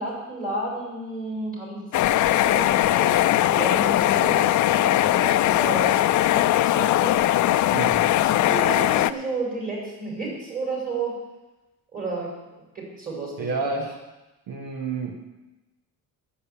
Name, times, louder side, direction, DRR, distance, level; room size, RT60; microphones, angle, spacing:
voice 1, 0.0-3.2 3.5-5.9 6.3-7.2 8.2-11.1 11.9-12.3 12.8-13.8, right 3 dB, 25° right, -3 dB, 5.4 m, -32 dB
sound 1, 1.9-9.1, left 14 dB, 55° left, 0.5 m, -20 dB
voice 2, 7.7-8.1 13.4-14.0 14.5-15.2, right 4 dB, 80° right, 2 dB, 1.6 m, -29 dB
8.7 x 7.9 x 8.6 m, 1.0 s
cardioid pair, 130°, 37 cm